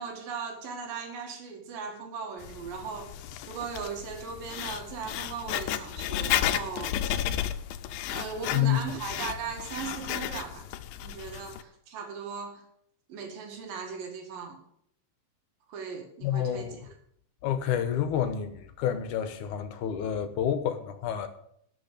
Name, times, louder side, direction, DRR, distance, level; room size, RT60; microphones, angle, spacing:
voice 1, 0.0-7.3 8.1-10.7 11.0-12.6 13.1-14.6 15.7-16.8, right 6 dB, 80° right, 3.7 m, -38 dB
Writing, 2.4-11.6, left 11 dB, 85° left, 2.5 m, -33 dB
voice 2, 8.5-9.0 16.2-16.8 17.4-21.3, left 9 dB, 70° left, 2.4 m, -29 dB
12.5 x 6.4 x 8.5 m
omnidirectional pair, 4.0 m